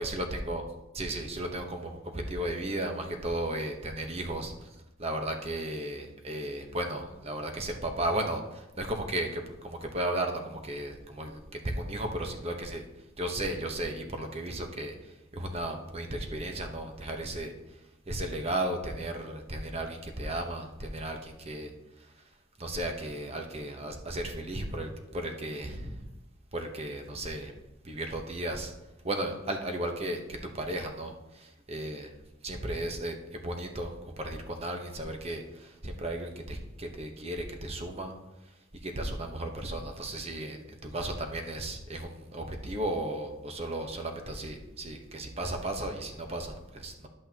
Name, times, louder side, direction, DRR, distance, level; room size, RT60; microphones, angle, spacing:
voice 1, 0.0-0.6 1.0-4.7 5.0-12.8 13.2-17.5 18.1-21.7 22.6-26.0 26.5-27.5 27.8-28.7 29.0-32.1 32.4-38.1 38.8-47.1, right 1 dB, 30° right, 4 dB, 0.9 m, -35 dB
10.5 x 8.1 x 2.9 m, 0.97 s
head